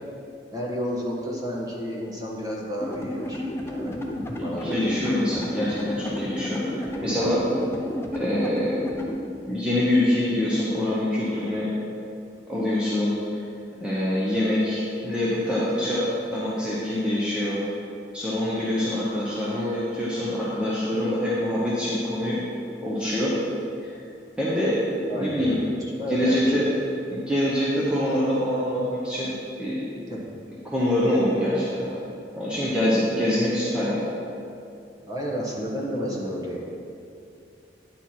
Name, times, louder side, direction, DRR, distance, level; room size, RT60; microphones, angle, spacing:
voice 1, 0.5-4.2 4.4-5.3 6.9-7.7 25.1-25.6 26.0-26.7 30.1-30.2 35.0-36.6, equal, 20° right, -4 dB, 1.2 m, -31 dB
sound 1, 2.8-9.1, left 1 dB, 15° left, 0.5 m, -32 dB
voice 2, 4.4-7.4 8.1-9.1 9.5-11.7 12.5-13.1 13.8-17.6 18.1-22.4 22.8-23.3 23.8-23.9 24.4-24.8 25.1-25.6 26.1-26.6 27.1-29.3 29.6-29.8 30.7-31.9 32.4-34.2, left 1 dB, 5° right, -8 dB, 0.9 m, -25 dB
9.8 x 4.5 x 4.3 m, 2.6 s
head